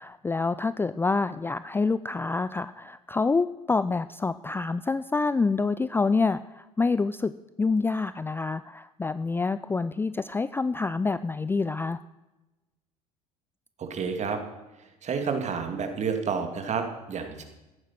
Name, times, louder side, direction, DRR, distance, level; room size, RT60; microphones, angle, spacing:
voice 1, 0.0-7.3 7.6-12.0, left 4 dB, 10° left, 15 dB, 0.4 m, -27 dB
voice 2, 13.8-14.4 15.0-17.4, right 5 dB, 40° right, 6 dB, 2.5 m, -30 dB
14.5 x 10.5 x 6.0 m, 1.1 s
hypercardioid pair, 70°, 19 cm